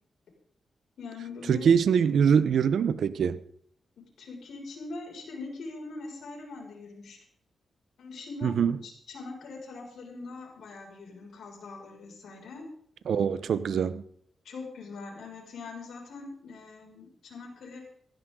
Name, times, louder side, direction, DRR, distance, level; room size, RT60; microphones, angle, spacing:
voice 1, 1.0-1.7 4.0-7.2 8.0-12.6 14.4-17.8, left 3 dB, 80° left, 0 dB, 6.2 m, -42 dB
voice 2, 1.5-3.4 8.4-8.8 13.1-14.0, right 7 dB, 75° right, 15 dB, 0.9 m, -23 dB
16.0 x 15.5 x 3.9 m, 0.65 s
cardioid pair, 90°, 0 cm